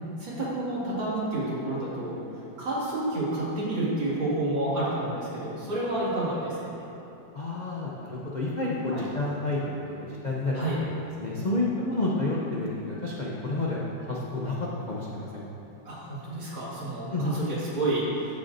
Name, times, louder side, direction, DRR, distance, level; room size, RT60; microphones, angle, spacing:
voice 1, 0.2-6.8 8.9-9.0 10.5-10.8 15.8-18.4, right 1 dB, 80° right, -8 dB, 3.0 m, -30 dB
voice 2, 7.3-10.6 11.2-15.4 17.1-17.4, left 2 dB, 50° left, -5 dB, 0.5 m, -30 dB
14.0 x 7.0 x 2.7 m, 2.9 s
omnidirectional pair, 2.0 m